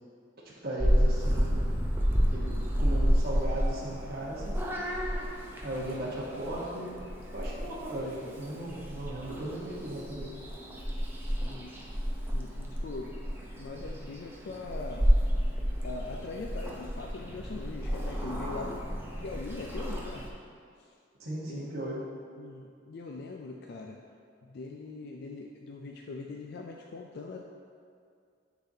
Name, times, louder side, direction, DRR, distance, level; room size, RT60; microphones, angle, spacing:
voice 1, 0.4-4.6 5.6-7.0 7.3-10.4 21.2-22.1, right 1 dB, 55° right, -6 dB, 1.1 m, -37 dB
Purr / Meow, 0.8-20.3, equal, 10° right, 0.6 m, -31 dB
voice 2, 11.4-11.8 12.3-13.2 13.6-15.1 15.8-18.8 19.2-20.2 21.5-21.7 22.4-24.0 24.4-27.4, left 3 dB, 60° left, 1 dB, 0.4 m, -41 dB
10.0 x 4.0 x 2.7 m, 2.3 s
head